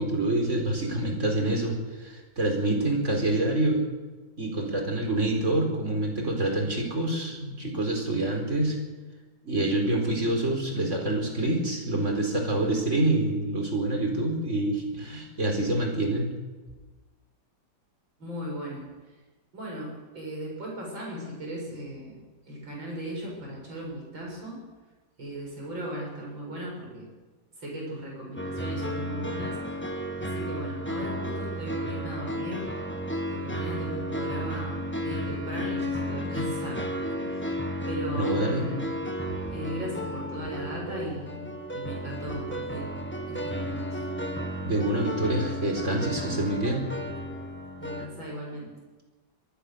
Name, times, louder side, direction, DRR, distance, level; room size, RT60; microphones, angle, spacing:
voice 1, 0.0-3.8 4.4-8.8 9.4-16.4 38.1-38.6 44.6-46.9, right 1 dB, 35° right, 3 dB, 4.6 m, -26 dB
voice 2, 18.2-18.9 19.5-22.2 22.5-24.6 25.2-27.1 27.6-29.6 30.1-32.7 33.3-36.9 37.2-38.9 39.3-42.9 43.3-44.0 47.8-48.7, equal, 80° right, -2 dB, 7.8 m, -37 dB
sound 1, 28.4-48.1, equal, 5° left, 1.6 m, -33 dB
25.0 x 19.0 x 6.7 m, 1.3 s
omnidirectional pair, 2.1 m